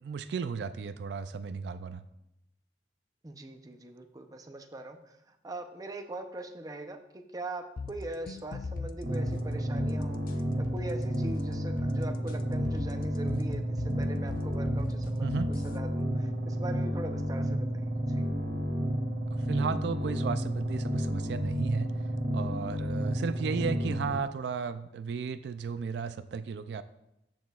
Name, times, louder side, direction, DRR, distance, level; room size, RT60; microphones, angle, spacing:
voice 1, 0.0-2.0 15.2-15.5 19.4-21.9 22.3-26.8, right 5 dB, 70° right, 12 dB, 0.3 m, -34 dB
voice 2, 3.2-18.2, right 2 dB, 20° right, 6 dB, 0.6 m, -42 dB
sound 1, 7.8-15.8, left 3 dB, 50° left, 0.4 m, -41 dB
sound 2, 9.0-24.1, equal, 55° right, 2.2 m, -31 dB
13.5 x 6.1 x 2.4 m, 0.85 s
head